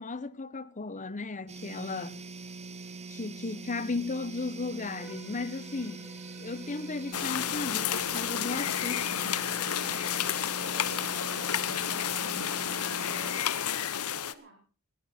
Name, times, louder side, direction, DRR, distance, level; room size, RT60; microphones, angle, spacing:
voice 1, 0.0-2.2 3.1-6.0 6.4-9.3, left 3 dB, 35° left, 0.9 m, -35 dB
sound 1, 1.5-13.4, right 4 dB, 30° right, 2.1 m, -43 dB
Bowed string instrument, 4.9-11.6, left 1 dB, 10° right, 5.1 m, -53 dB
sound 2, 7.1-14.3, left 9 dB, 75° left, 0.9 m, -31 dB
voice 2, 10.6-11.6 12.2-14.6, right 1 dB, 50° right, 6.9 m, -52 dB
19.0 x 15.0 x 4.3 m
head